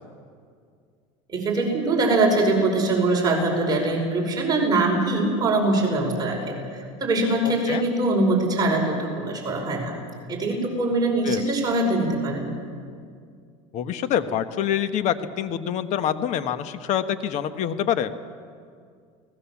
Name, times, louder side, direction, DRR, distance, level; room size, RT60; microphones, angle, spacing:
voice 1, 1.3-9.9 10.3-12.5, right 2 dB, 25° right, 0 dB, 5.3 m, -23 dB
voice 2, 13.7-18.1, left 9 dB, 50° left, 10 dB, 1.4 m, -26 dB
29.0 x 19.5 x 7.3 m, 2.2 s
supercardioid pair, 120°, 15 cm